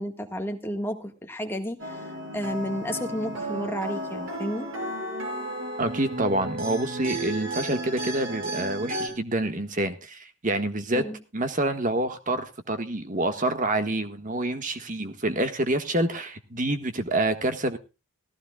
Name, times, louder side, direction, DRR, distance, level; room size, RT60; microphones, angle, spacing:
voice 1, 0.0-2.1 2.3-4.7 10.9-11.2, equal, 10° left, 4 dB, 1.6 m, -32 dB
sound 1, 1.8-9.1, right 1 dB, 60° right, 5.6 m, -33 dB
voice 2, 5.8-11.0 11.3-17.8, right 1 dB, 35° right, 9 dB, 1.6 m, -27 dB
18.0 x 15.0 x 2.3 m, 0.30 s
head